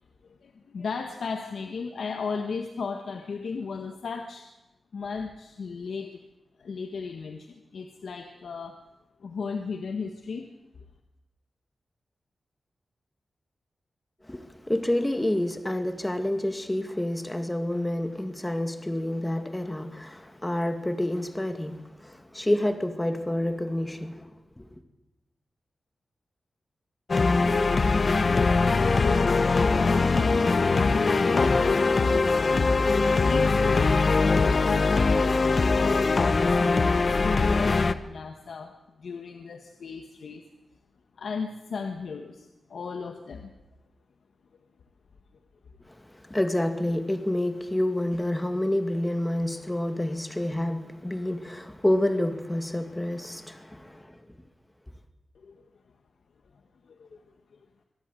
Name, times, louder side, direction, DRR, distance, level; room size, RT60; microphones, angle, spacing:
voice 1, 0.2-4.5 4.9-6.2 6.6-8.8 9.2-10.5 29.7-32.0 33.2-36.8 37.2-38.7 39.0-40.4 41.2-43.5 55.3-55.6 56.8-57.2 57.5-57.6, left 5 dB, 75° left, 1.6 m, -36 dB
voice 2, 14.3-24.8 46.1-54.2, left 1 dB, 10° left, 2.1 m, -28 dB
sound 1, 27.1-37.9, left 3 dB, 45° left, 1.0 m, -22 dB
24.5 x 17.5 x 7.8 m
wide cardioid pair, 105°, 0 cm